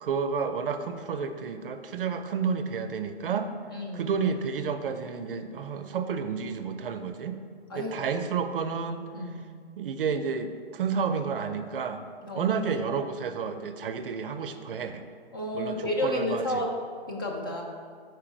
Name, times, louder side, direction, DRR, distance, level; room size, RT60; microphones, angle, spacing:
voice 1, 0.0-3.5 3.9-7.4 7.8-9.0 9.7-15.0 15.5-16.4, right 6 dB, 60° right, 9 dB, 0.5 m, -30 dB
voice 2, 3.7-4.1 7.7-8.2 9.1-9.4 12.3-12.5 15.3-16.7 17.1-17.6, left 1 dB, 25° left, 0 dB, 0.3 m, -31 dB
4.8 x 4.7 x 4.6 m, 2.1 s
figure-of-eight pair, 125°, 32 cm